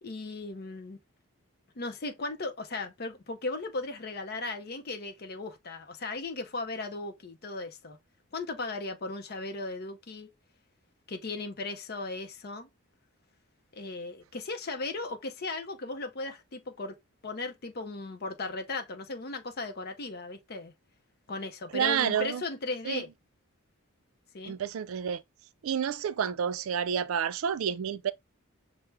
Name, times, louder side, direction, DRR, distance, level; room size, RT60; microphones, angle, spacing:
voice 1, 0.0-1.0 1.8-8.0 8.3-10.3 11.1-12.7 13.7-17.0 17.2-20.7 21.3-23.1 24.3-24.6, left 3 dB, 45° left, 0.6 m, -37 dB
voice 2, 21.7-22.4 22.8-23.0 24.5-25.2 25.6-28.1, right 8 dB, 65° right, 0.3 m, -29 dB
5.8 x 2.1 x 3.3 m
head